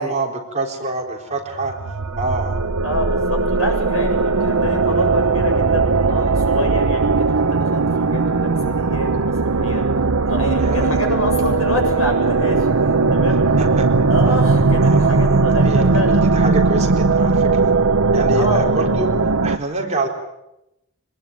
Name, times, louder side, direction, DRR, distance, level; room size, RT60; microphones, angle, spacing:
voice 1, 0.0-1.7 2.2-2.6 10.6-11.0 13.6-13.8 14.8-17.7 18.1-19.1 19.4-20.1, right 2 dB, 30° right, 1 dB, 3.9 m, -26 dB
sound 1, 1.5-19.6, right 3 dB, 85° right, 0.9 m, -18 dB
voice 2, 2.8-9.8 10.2-13.7 14.1-16.3 18.3-18.7, left 1 dB, 75° left, 3 dB, 7.8 m, -27 dB
24.5 x 20.0 x 9.3 m, 0.89 s
head